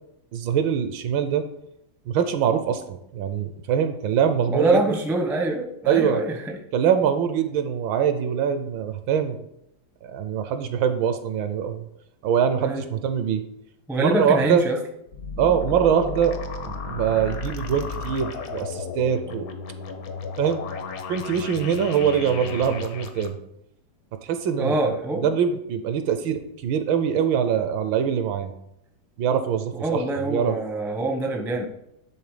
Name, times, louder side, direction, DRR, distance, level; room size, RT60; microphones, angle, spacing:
voice 1, 0.3-1.5 2.1-4.8 5.8-6.2 6.7-9.4 10.0-11.8 12.2-13.4 14.0-14.6 15.4-16.4 16.6-19.5 20.4-20.6 21.1-23.4 24.2-24.8 25.2-28.5 29.2-30.5, right 8 dB, 75° right, 9 dB, 1.3 m, -23 dB
voice 2, 4.5-6.6 12.6-12.8 13.9-14.8 24.6-25.3 29.8-31.7, right 2 dB, ahead, 2 dB, 0.4 m, -24 dB
sound 1, 15.1-23.3, left 5 dB, 60° left, 1.0 m, -34 dB
11.0 x 3.9 x 5.0 m, 0.79 s
omnidirectional pair, 2.3 m